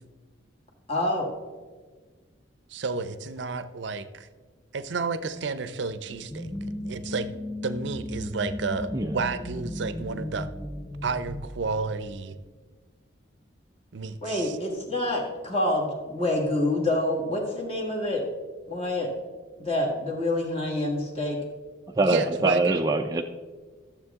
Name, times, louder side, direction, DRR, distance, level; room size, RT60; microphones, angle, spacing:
voice 1, 0.9-1.3 14.2-18.2 18.7-19.1 19.6-21.4, left 1 dB, 30° left, -2 dB, 1.6 m, -27 dB
voice 2, 2.7-4.3 4.7-6.5 6.8-7.3 7.6-10.5 11.0-12.4 13.9-14.6 22.0-22.8, right 4 dB, 65° right, 13 dB, 0.5 m, -31 dB
sound 1, 6.1-12.5, left 1 dB, 5° left, 0.7 m, -36 dB
voice 3, 22.0-23.2, right 2 dB, 20° right, 3 dB, 0.3 m, -24 dB
12.5 x 7.2 x 3.6 m, 1.4 s
head